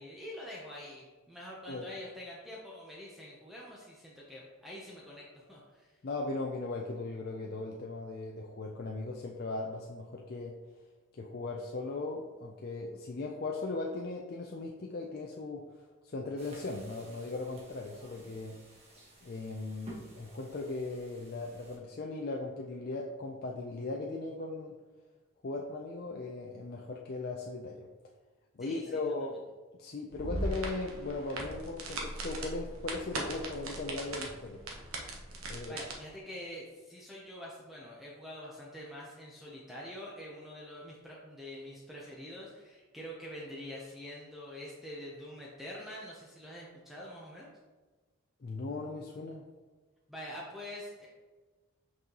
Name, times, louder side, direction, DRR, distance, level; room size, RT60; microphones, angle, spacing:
voice 1, 0.0-5.9 28.6-29.0 35.7-47.5 50.1-51.1, left 1 dB, ahead, -5 dB, 0.6 m, -45 dB
voice 2, 6.0-10.6 11.1-15.6 16.0-18.6 19.2-24.7 25.4-27.9 28.5-29.4 29.8-34.6 35.5-35.8 48.4-49.4, left 3 dB, 45° left, 0 dB, 0.4 m, -38 dB
sound 1, 16.4-21.8, right 1 dB, 30° right, 1.2 m, -53 dB
sound 2, 30.1-35.9, right 2 dB, 85° right, 1.0 m, -39 dB
6.1 x 5.4 x 2.9 m, 1.3 s
head